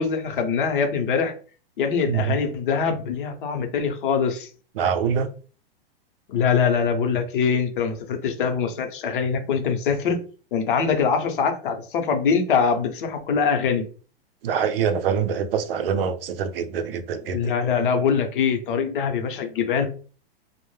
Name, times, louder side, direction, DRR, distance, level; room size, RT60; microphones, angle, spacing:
voice 1, 0.0-1.3 1.8-4.5 6.3-10.2 10.5-13.9 17.3-19.9, left 6 dB, 55° left, 0.7 m, -23 dB
voice 2, 2.1-2.4 4.8-5.3 14.4-17.5, right 7 dB, 65° right, 0.5 m, -24 dB
2.1 x 2.0 x 3.1 m
hypercardioid pair, 165°, 31 cm